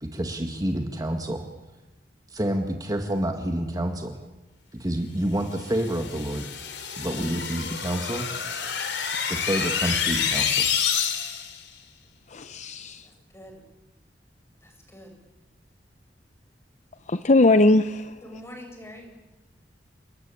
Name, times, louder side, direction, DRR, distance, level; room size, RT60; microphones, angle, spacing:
voice 1, 0.0-1.4 2.3-4.2 4.8-6.5 7.0-8.3 9.3-10.7, right 1 dB, 20° right, 4 dB, 1.9 m, -28 dB
sound 1, 5.6-11.6, left 7 dB, 85° left, 3.4 m, -28 dB
voice 2, 12.3-13.1 17.1-18.2, left 2 dB, 45° left, 11 dB, 0.8 m, -20 dB
voice 3, 13.0-13.6 14.6-15.2 18.2-19.1, left 1 dB, 15° left, 2 dB, 6.9 m, -44 dB
30.0 x 19.5 x 8.6 m, 1.1 s
head